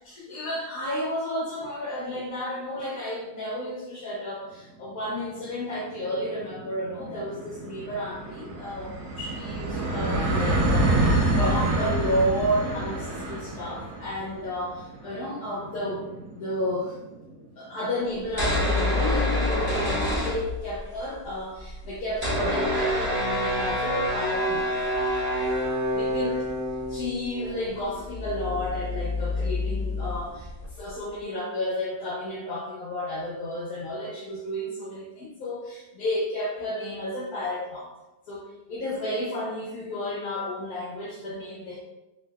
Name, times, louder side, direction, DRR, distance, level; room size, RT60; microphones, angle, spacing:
voice 1, 0.0-16.1 16.3-16.9 17.6-24.7 25.9-26.4 26.9-37.9 38.3-41.8, equal, 70° left, -6 dB, 1.1 m, -32 dB
sound 1, 5.0-5.1 5.4-5.5 5.8-17.2, right 2 dB, 80° right, 1.2 m, -28 dB
sound 2, 18.2-21.0 21.2-21.3 21.5-30.9, left 1 dB, 25° right, 1.3 m, -27 dB
3.2 x 3.0 x 2.2 m, 0.98 s
omnidirectional pair, 1.7 m